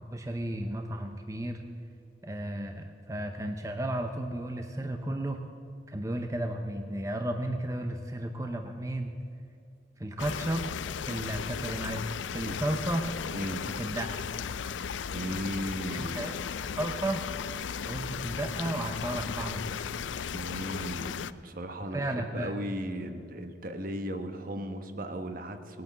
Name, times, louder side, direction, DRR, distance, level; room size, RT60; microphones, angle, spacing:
voice 1, 0.1-1.6 2.2-5.4 5.9-9.1 10.0-10.7 11.0-12.0 12.3-13.1 13.7-14.3 15.9-16.4 16.8-17.2 17.9-19.9 21.9-22.6, right 1 dB, 15° right, 5 dB, 0.6 m, -33 dB
sound 1, 10.2-21.3, left 7 dB, 85° left, 0.4 m, -36 dB
voice 2, 13.3-13.7 15.1-16.4 20.3-25.8, equal, 50° right, 7 dB, 1.1 m, -36 dB
19.0 x 9.3 x 7.4 m, 2.6 s
head